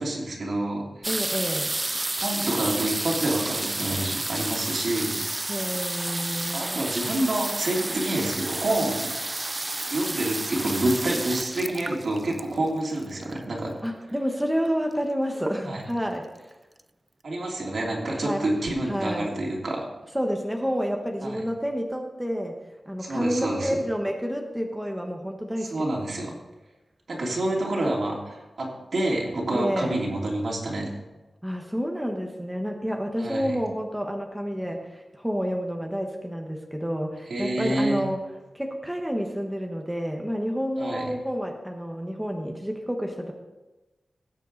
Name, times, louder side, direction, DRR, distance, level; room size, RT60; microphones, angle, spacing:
voice 1, 0.0-1.1 2.2-5.2 6.5-9.1 9.9-13.7 15.6-15.8 17.2-19.8 21.2-21.4 23.0-23.8 25.6-26.3 27.1-30.9 33.2-33.5 37.3-38.0 40.8-41.0, right 1 dB, 65° right, -3 dB, 3.1 m, -28 dB
sound 1, 1.0-13.6 14.4-14.5 14.7-15.1 15.4-16.0 16.5-16.6 16.8-16.9, right 2 dB, 25° right, 0.3 m, -31 dB
voice 2, 1.1-1.7 5.5-6.8 13.8-16.5 18.2-18.4 18.9-19.3 20.1-22.5 22.9-25.7 29.5-29.9 31.4-38.2 38.5-43.3, equal, 5° right, 2 dB, 1.2 m, -29 dB
17.5 x 7.6 x 4.1 m, 1.1 s
wide cardioid pair, 85°, 0 cm